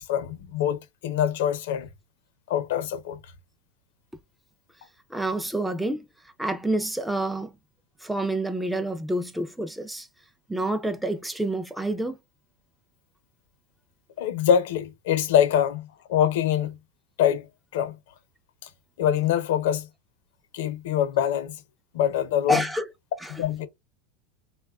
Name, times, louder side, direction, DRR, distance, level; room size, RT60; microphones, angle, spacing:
voice 1, 0.0-1.9 2.5-3.2 14.2-16.8 17.2-17.5 17.7-18.0 19.0-19.9 20.5-21.6 21.9-22.6 23.3-23.7, left 10 dB, 75° left, 0.6 m, -24 dB
voice 2, 5.1-6.1 6.4-7.5 8.0-10.1 10.5-12.2 22.5-22.9 23.2-23.3, right 1 dB, 5° right, 0.4 m, -28 dB
3.3 x 2.3 x 2.2 m
supercardioid pair, 145°, 0 cm